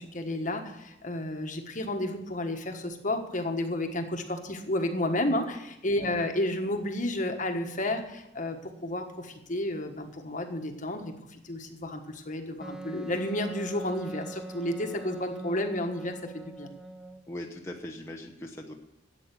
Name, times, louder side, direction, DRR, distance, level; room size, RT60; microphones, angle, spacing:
voice 1, 0.0-16.7, left 1 dB, 40° left, 5 dB, 1.4 m, -31 dB
Wind instrument woodwind instrument, 12.6-17.2, right 2 dB, 5° right, 0.5 m, -42 dB
voice 2, 17.3-18.7, left 1 dB, 15° left, 0 dB, 1.0 m, -40 dB
13.0 x 8.4 x 6.7 m, 0.87 s
head